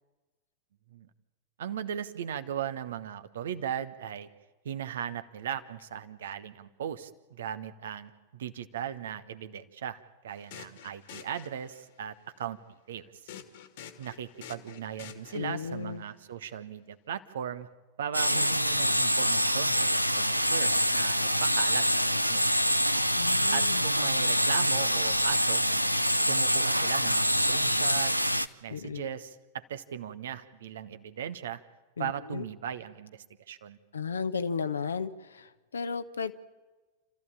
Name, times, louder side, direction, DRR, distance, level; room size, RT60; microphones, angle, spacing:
voice 1, 1.6-4.3 4.6-12.6 12.9-13.3 14.0-17.7 18.0-19.9 20.1-21.9 22.3-22.6 23.5-25.6 26.3-28.1 28.6-31.6 32.0-33.8, right 9 dB, 60° right, 12 dB, 1.2 m, -38 dB
sound 1, 10.3-12.0 13.3-15.7, left 9 dB, 55° left, 2.0 m, -48 dB
voice 2, 15.3-16.0 18.3-18.6 23.2-23.8 28.7-29.0 32.0-32.4 33.9-36.3, left 5 dB, 70° left, 11 dB, 1.1 m, -34 dB
sound 2, 18.1-28.5, equal, 90° right, 0.6 m, -25 dB
29.5 x 14.0 x 8.9 m, 1.2 s
figure-of-eight pair, 90°, 0 cm